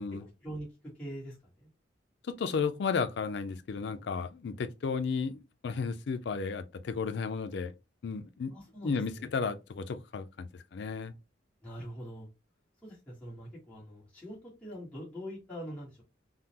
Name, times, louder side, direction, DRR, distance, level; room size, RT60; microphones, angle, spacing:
voice 1, 0.4-1.7 8.5-9.4 11.6-12.3 12.8-16.0, equal, 5° left, 1.2 m, -43 dB
voice 2, 2.3-7.7 8.0-8.5 8.8-11.1, left 5 dB, 60° left, 0.4 m, -33 dB
3.6 x 2.0 x 2.8 m
head